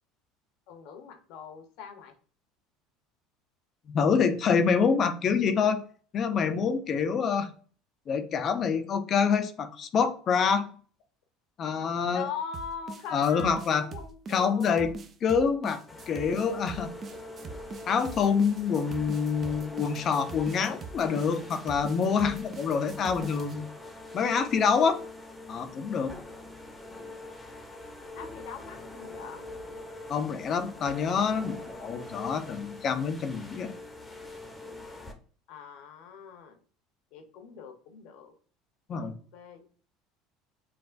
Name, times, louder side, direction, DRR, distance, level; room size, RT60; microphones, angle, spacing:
voice 1, 0.7-2.1 12.1-14.9 28.1-29.4 35.5-36.6 37.1-38.3 39.0-39.6, left 7 dB, 70° left, 6 dB, 0.9 m, -41 dB
voice 2, 3.9-5.8 6.1-7.5 8.1-10.7 11.6-12.3 13.1-13.8 14.3-17.0 17.9-23.7 24.1-25.0 25.5-26.1 30.1-33.7 38.9-39.2, left 6 dB, 45° left, 10 dB, 0.5 m, -26 dB
sound 1, 12.5-23.6, right 5 dB, 35° right, 0.5 m, -43 dB
sound 2, 15.9-35.1, left 2 dB, 10° left, 0.8 m, -44 dB
5.8 x 2.4 x 2.5 m, 0.42 s
supercardioid pair, 95°, 0 cm